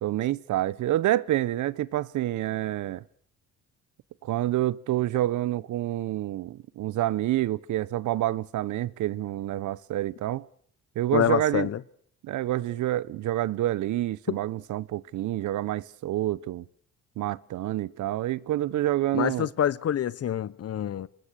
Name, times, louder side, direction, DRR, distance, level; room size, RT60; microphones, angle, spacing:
voice 1, 0.0-3.0 4.2-10.5 11.0-11.7 12.2-16.6 17.2-19.5, right 14 dB, 75° right, 0.8 m, -28 dB
voice 2, 11.1-11.8 14.3-14.4 19.1-21.1, left 10 dB, 55° left, 1.0 m, -26 dB
26.5 x 20.5 x 6.5 m
cardioid pair, 90°, 30 cm